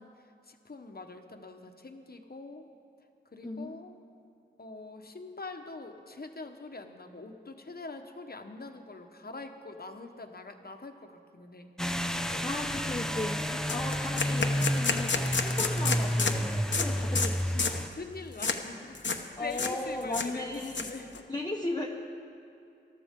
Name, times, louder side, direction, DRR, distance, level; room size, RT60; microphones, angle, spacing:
voice 1, 0.0-2.7 3.3-4.0 4.6-11.7 13.5-13.9 16.7-21.3, left 3 dB, 50° left, 5 dB, 1.3 m, -44 dB
voice 2, 3.4-3.8 12.4-17.4 19.4-20.9 21.3-21.9, left 2 dB, 20° left, -1 dB, 1.1 m, -36 dB
sound 1, 11.8-17.9, equal, 5° left, 0.7 m, -30 dB
sound 2, 12.3-12.4 12.7-12.9 13.2-13.3 13.7-16.4 16.7-16.9 17.1-17.3 17.6-17.8 18.4-18.6 18.9-19.2 19.5-19.7 20.0-21.2, left 4 dB, 70° left, 1.1 m, -30 dB
sound 3, 12.7-16.6, equal, 50° right, 1.5 m, -49 dB
20.0 x 13.0 x 3.8 m, 2.6 s
cardioid pair, 45°, 20 cm